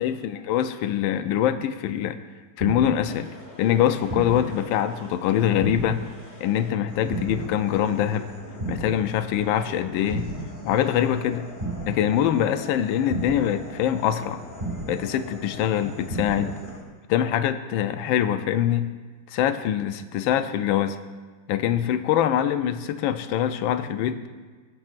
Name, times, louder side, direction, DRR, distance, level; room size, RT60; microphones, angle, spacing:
voice 1, 0.0-2.2 2.6-3.3 3.6-6.0 6.4-8.3 8.7-10.3 10.6-11.5 11.9-14.4 14.9-16.5 17.1-18.9 19.3-21.0 21.5-24.2, left 10 dB, 85° left, 10 dB, 1.3 m, -24 dB
sound 1, 2.6-3.1 4.1-4.6 5.6-6.1 7.1-7.6 8.6-9.1 10.1-10.6 11.6-12.1 13.1-13.6 14.6-15.1 16.1-16.6, right 2 dB, 25° right, 1.2 m, -32 dB
sound 2, 3.0-16.8, left 1 dB, 30° left, 1.3 m, -43 dB
16.0 x 9.0 x 2.5 m, 1.4 s
omnidirectional pair, 2.1 m